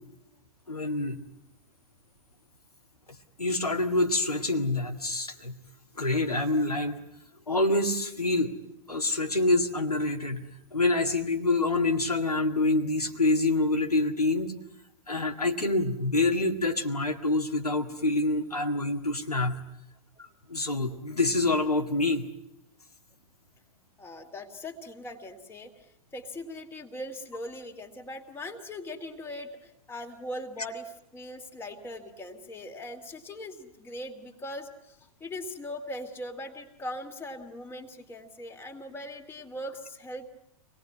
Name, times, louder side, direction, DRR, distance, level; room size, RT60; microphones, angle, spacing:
voice 1, 0.7-1.2 3.4-5.6 6.0-7.0 7.5-8.5 8.9-10.4 10.7-14.5 15.1-19.6 20.2-22.3, left 2 dB, 85° left, 3 dB, 1.9 m, -26 dB
voice 2, 24.0-25.9 26.1-40.3, left 1 dB, 10° left, 3 dB, 2.4 m, -40 dB
25.5 x 19.0 x 9.6 m, 0.82 s
figure-of-eight pair, 100°, 19 cm